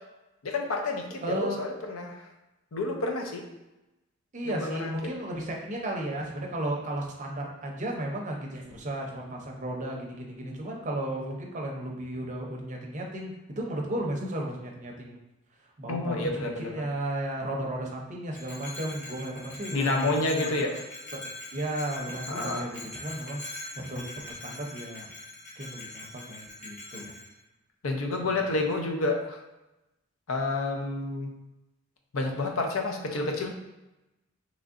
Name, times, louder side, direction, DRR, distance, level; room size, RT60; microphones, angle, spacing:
voice 1, 0.4-2.2 2.7-3.5 4.4-4.9 15.9-16.9 19.7-20.8 22.3-22.7 27.8-29.4 30.3-31.3 32.1-33.5, left 2 dB, 80° left, 2 dB, 0.6 m, -29 dB
voice 2, 1.2-1.6 4.3-15.2 15.8-20.8 21.5-25.1 25.6-27.1 28.1-28.5, right 1 dB, 35° right, 0 dB, 0.6 m, -34 dB
Bell, 18.3-27.3, left 2 dB, 35° left, 1.0 m, -42 dB
3.6 x 3.1 x 2.5 m, 0.98 s
head